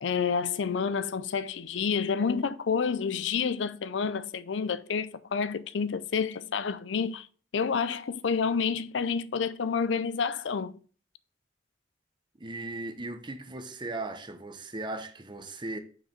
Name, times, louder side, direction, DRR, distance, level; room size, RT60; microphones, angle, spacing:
voice 1, 0.0-7.3 7.5-10.8, left 6 dB, 85° left, 0.5 m, -29 dB
voice 2, 12.4-15.8, right 2 dB, 25° right, 0.9 m, -37 dB
6.1 x 4.9 x 5.4 m
head